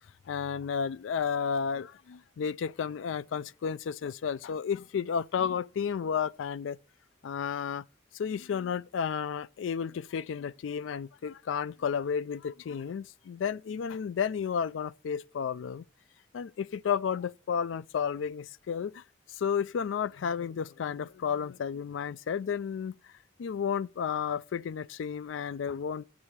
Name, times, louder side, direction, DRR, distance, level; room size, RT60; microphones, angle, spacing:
voice 1, 0.3-6.8 7.2-7.8 8.1-15.8 16.3-19.0 19.3-23.0 23.4-26.0, left 7 dB, 80° left, 0.3 m, -32 dB
7.9 x 4.9 x 7.1 m
head